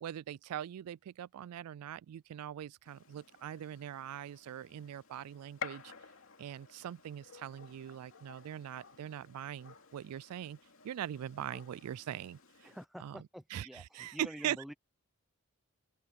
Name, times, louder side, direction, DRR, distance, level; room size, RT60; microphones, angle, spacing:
voice 1, 0.0-5.9 6.4-10.6 10.8-12.7 13.0-13.2 13.5-14.6, right 10 dB, 85° right, 0.3 m, -41 dB
Gunshot gunfire, 2.8-12.8, left 6 dB, 60° left, 2.7 m, -52 dB
voice 2, 12.6-14.7, equal, ahead, 0.8 m, -48 dB
open air
head